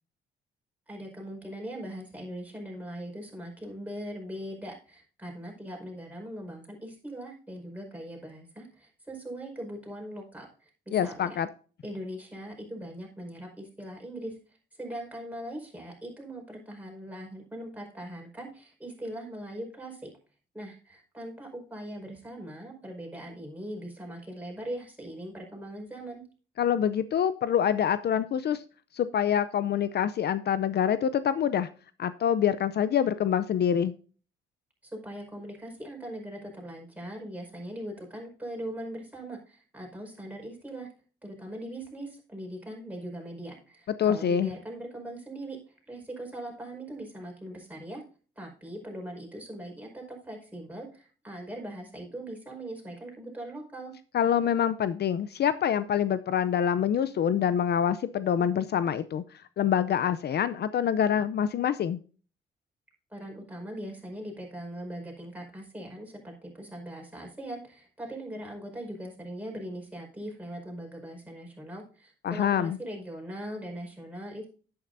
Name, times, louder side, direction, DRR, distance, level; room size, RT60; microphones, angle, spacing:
voice 1, 0.9-11.4 11.8-14.4 14.8-20.1 20.5-26.2 34.9-40.9 41.2-45.6 45.9-48.0 48.3-53.9 63.1-74.5, right 1 dB, 10° right, 0 dB, 5.2 m, -40 dB
voice 2, 10.9-11.5 26.6-28.6 28.9-31.7 32.0-33.9 44.0-44.5 54.1-59.2 59.6-62.0 72.2-72.8, left 9 dB, 55° left, 14 dB, 0.6 m, -26 dB
11.0 x 9.5 x 2.6 m, 0.39 s
cardioid pair, 90°, 20 cm